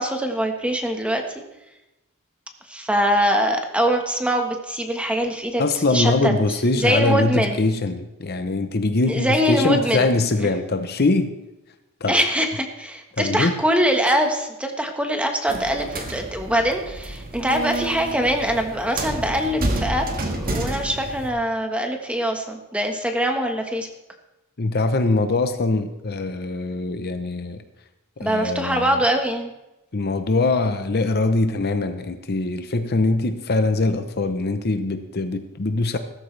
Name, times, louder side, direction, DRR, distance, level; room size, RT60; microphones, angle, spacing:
voice 1, 0.0-1.4 2.7-5.6 5.9-6.3 6.8-7.6 9.0-10.1 12.1-20.1 20.3-23.9 28.2-29.5, equal, 5° right, 4 dB, 1.3 m, -23 dB
voice 2, 5.6-11.4 12.0-12.2 13.2-13.6 24.6-27.6 28.2-29.0 29.9-36.0, left 2 dB, 45° left, 8 dB, 0.8 m, -22 dB
sound 1, 15.5-21.3, right 1 dB, 40° right, 1.7 m, -29 dB
15.5 x 13.5 x 3.3 m, 0.96 s
head